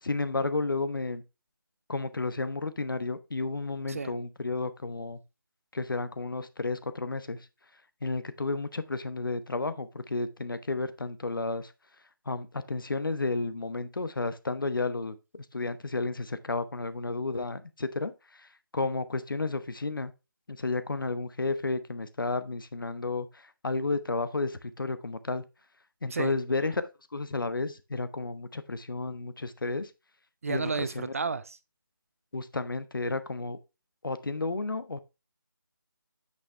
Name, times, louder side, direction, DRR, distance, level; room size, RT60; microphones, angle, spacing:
voice 1, 0.0-1.2 1.9-5.2 5.7-7.4 8.0-11.7 12.3-15.2 15.5-18.5 18.7-20.1 20.5-25.4 26.0-26.8 27.1-29.9 30.5-31.1 32.3-33.6 34.0-35.0, left 3 dB, 70° left, 1.1 m, -32 dB
voice 2, 30.4-31.6, right 4 dB, 40° right, 0.6 m, -32 dB
8.4 x 6.4 x 3.2 m
figure-of-eight pair, 165°, 12 cm